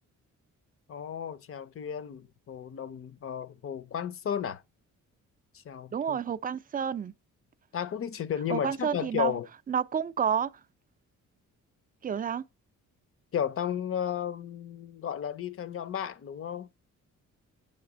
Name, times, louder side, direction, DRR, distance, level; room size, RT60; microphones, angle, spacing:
voice 1, 0.9-4.6 5.5-6.2 7.7-9.5 13.3-16.7, left 8 dB, 45° left, 0.6 m, -33 dB
voice 2, 5.9-7.1 8.5-9.4 9.7-10.5 12.0-12.4, right 8 dB, 30° right, 0.4 m, -30 dB
8.0 x 3.3 x 6.0 m
cardioid pair, 140°, 31 cm